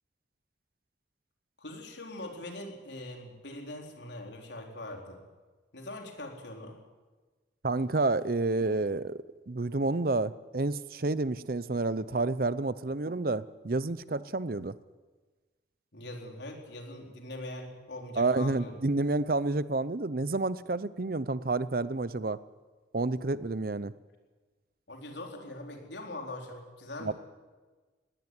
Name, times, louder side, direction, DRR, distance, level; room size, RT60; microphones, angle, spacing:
voice 1, 1.6-5.2 5.7-6.8 15.9-18.8 24.9-27.1, left 1 dB, 75° left, 2 dB, 4.2 m, -42 dB
voice 2, 7.6-9.2 9.5-14.7 18.2-22.4 22.9-23.9 27.0-27.1, right 2 dB, 50° right, 16 dB, 0.7 m, -29 dB
19.5 x 18.0 x 9.6 m, 1.3 s
head